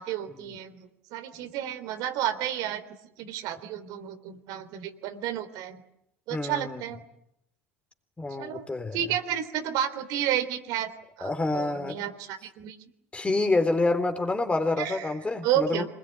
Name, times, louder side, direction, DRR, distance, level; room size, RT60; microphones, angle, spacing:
voice 1, 0.0-2.8 3.2-5.8 6.3-7.0 8.4-8.7 8.9-10.9 11.2-12.7 14.8-15.1 15.4-15.9, right 10 dB, 60° right, 7 dB, 3.4 m, -31 dB
voice 2, 6.3-6.8 8.2-9.0 11.2-12.0 13.1-15.8, left 2 dB, 15° left, 8 dB, 3.6 m, -27 dB
26.0 x 21.0 x 9.8 m, 0.80 s
hypercardioid pair, 80°, 7 cm